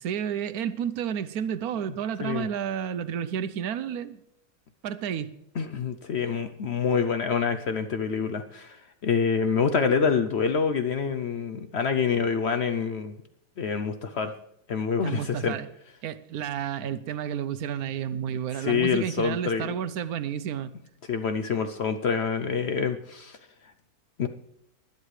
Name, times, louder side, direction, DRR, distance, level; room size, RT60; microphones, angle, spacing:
voice 1, 0.0-4.2 4.8-5.3 15.0-15.7 16.0-20.7, right 9 dB, 75° right, 13 dB, 1.1 m, -31 dB
voice 2, 5.6-13.1 13.6-14.3 14.7-15.6 18.6-19.8 21.1-23.4 24.2-24.3, left 6 dB, 60° left, 8 dB, 0.7 m, -26 dB
20.0 x 10.5 x 3.2 m, 0.78 s
omnidirectional pair, 1.6 m